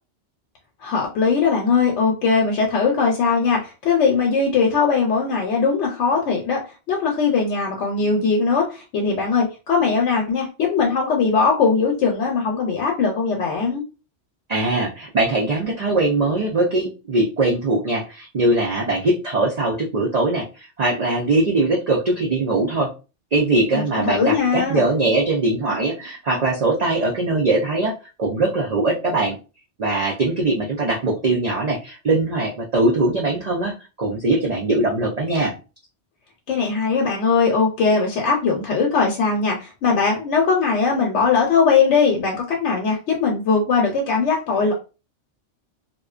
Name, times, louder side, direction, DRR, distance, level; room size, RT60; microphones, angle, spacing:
voice 1, 0.8-6.6 6.9-13.8 23.7-24.8 36.5-44.7, left 5 dB, 75° left, 0 dB, 0.9 m, -20 dB
voice 2, 14.5-20.4 20.8-22.9 23.3-29.4 29.8-35.5, right 2 dB, 55° right, -2 dB, 0.4 m, -21 dB
2.5 x 2.1 x 2.3 m, 0.31 s
omnidirectional pair, 1.2 m